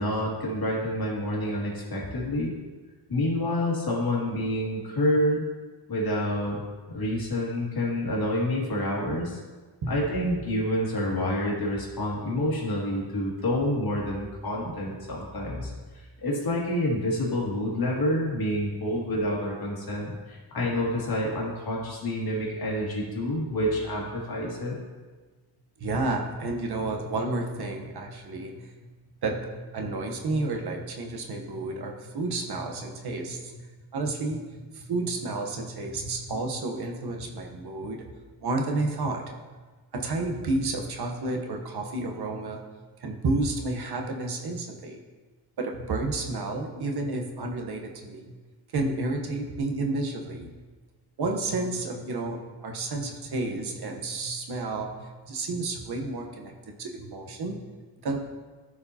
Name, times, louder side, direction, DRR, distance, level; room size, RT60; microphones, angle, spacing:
voice 1, 0.0-2.5 3.1-5.5 5.9-6.6 6.9-9.4 9.9-15.7 16.2-24.8, left 1 dB, 60° left, -4 dB, 2.3 m, -28 dB
voice 2, 25.8-28.7 29.2-33.6 33.9-38.0 38.4-39.3 39.9-42.6 43.0-45.0 45.6-48.3 48.7-50.6 51.2-57.6 58.0-58.2, right 2 dB, 65° right, 2 dB, 1.0 m, -31 dB
14.0 x 4.8 x 2.8 m, 1.3 s
wide cardioid pair, 145°, 42 cm